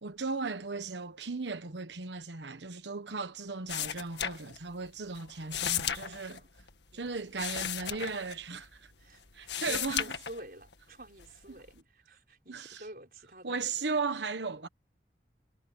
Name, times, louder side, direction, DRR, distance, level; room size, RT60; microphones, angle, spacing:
voice 1, 0.0-6.4 6.9-8.9 9.3-10.1 11.5-11.6 12.5-12.9 13.4-14.7, right 4 dB, 90° right, 1.3 m, -36 dB
sound 1, 3.7-4.9 5.1-8.9 9.3-10.7 11.2-11.8, left 9 dB, 85° left, 1.8 m, -35 dB
voice 2, 5.5-6.5 6.9-7.2 9.0-13.7, right 1 dB, 55° right, 5.6 m, -50 dB
head